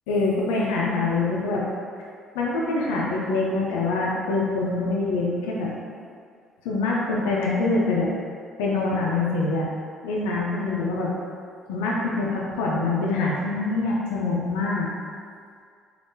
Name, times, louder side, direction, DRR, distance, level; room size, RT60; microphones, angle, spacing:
voice 1, 0.1-1.6 2.3-5.7 6.6-8.1 8.6-9.7 10.0-11.1 11.7-14.9, left 3 dB, 85° left, -4 dB, 0.4 m, -24 dB
3.5 x 2.4 x 2.6 m, 2.1 s
supercardioid pair, 65°, 0 cm